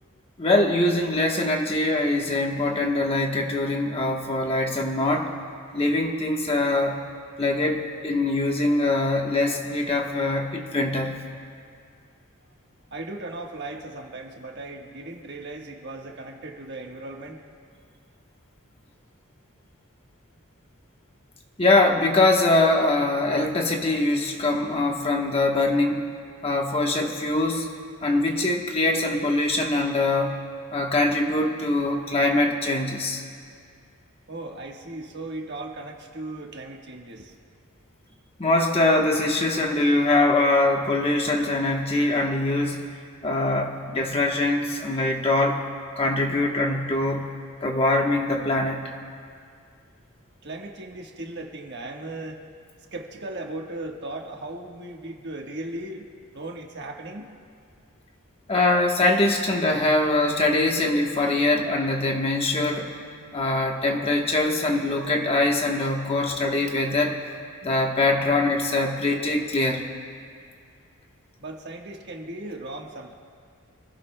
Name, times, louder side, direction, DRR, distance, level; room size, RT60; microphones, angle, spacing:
voice 1, 0.4-5.3 5.7-7.0 7.4-11.2 21.6-26.1 26.4-27.7 28.0-30.4 30.7-33.2 38.4-42.9 43.2-45.7 46.0-47.3 47.6-48.9 58.5-63.0 63.3-67.2 67.6-69.9, left 2 dB, 25° left, 1 dB, 1.1 m, -23 dB
voice 2, 12.9-17.4 34.3-37.3 50.4-52.4 52.9-56.0 56.3-57.3 71.4-73.1, right 2 dB, 50° right, 1 dB, 1.4 m, -37 dB
27.5 x 16.5 x 2.2 m, 2.2 s
head